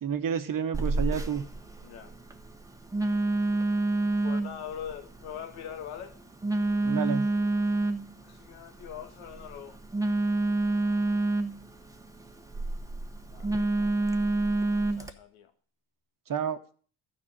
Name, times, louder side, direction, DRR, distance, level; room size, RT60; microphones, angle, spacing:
voice 1, 0.0-1.5 6.8-7.3 16.3-16.6, right 7 dB, 40° right, 1.2 m, -30 dB
Telephone, 0.7-15.1, right 2 dB, 5° right, 1.1 m, -29 dB
voice 2, 1.8-2.1 4.2-6.2 8.2-9.8 10.8-11.3 13.3-13.7 14.9-15.5, left 9 dB, 75° left, 1.8 m, -42 dB
12.0 x 5.3 x 8.9 m
cardioid pair, 95°, 50 cm